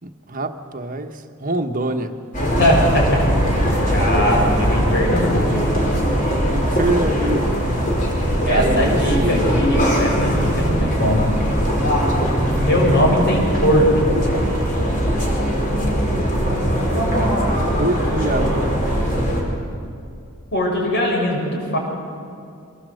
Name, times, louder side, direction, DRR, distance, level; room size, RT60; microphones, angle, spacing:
voice 1, 0.0-2.2 4.2-4.3 6.3-7.5 8.4-9.4 12.5-12.8 17.1-17.4 17.8-18.8, right 2 dB, 40° right, 6 dB, 1.3 m, -25 dB
sound 1, 2.3-19.4, equal, 40° left, 4.9 m, -20 dB
voice 2, 2.6-3.2 3.9-5.9 8.5-11.3 12.6-14.1 20.5-21.8, equal, 55° left, -1 dB, 6.5 m, -20 dB
24.5 x 20.0 x 8.0 m, 2.5 s
head